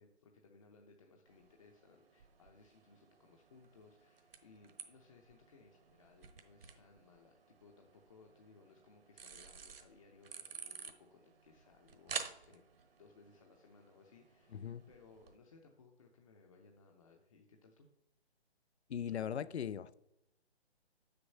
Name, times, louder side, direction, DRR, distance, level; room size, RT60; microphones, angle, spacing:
voice 1, 0.0-12.6 13.0-17.9, left 4 dB, 30° left, 0.7 m, -63 dB
sound 1, 1.3-15.4, right 6 dB, 60° right, 1.2 m, -51 dB
voice 2, 14.5-14.8 18.9-19.9, left 9 dB, 75° left, 0.6 m, -39 dB
7.2 x 6.8 x 5.5 m
hypercardioid pair, 155°, 33 cm